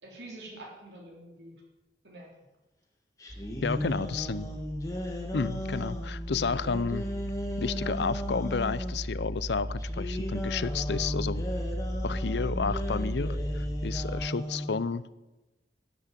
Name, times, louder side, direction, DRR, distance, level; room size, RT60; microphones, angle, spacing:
voice 1, 0.0-1.5 2.0-2.3 3.7-4.5, right 1 dB, 85° right, 0 dB, 3.7 m, -46 dB
sound 1, 3.2-9.0 9.8-14.9, equal, 20° left, 1.8 m, -36 dB
sound 2, 3.3-14.3, equal, 5° right, 0.5 m, -35 dB
voice 2, 3.6-4.5 5.3-7.1 7.6-11.4 12.0-15.0, left 5 dB, 80° left, 17 dB, 0.6 m, -31 dB
13.0 x 8.2 x 8.4 m, 1.1 s
head